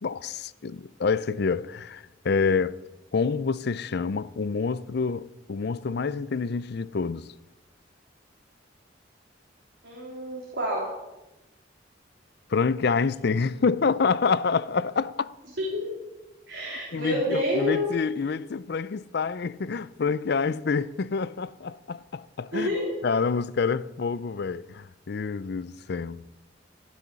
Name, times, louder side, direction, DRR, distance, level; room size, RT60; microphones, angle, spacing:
voice 1, 0.0-2.8 3.1-7.3 12.5-15.3 16.9-22.8 23.0-26.3, left 5 dB, 60° left, 0.5 m, -27 dB
voice 2, 9.8-11.0 15.6-15.9 16.5-17.9 22.5-23.0, left 1 dB, 70° right, 3.4 m, -28 dB
15.0 x 6.4 x 9.6 m
head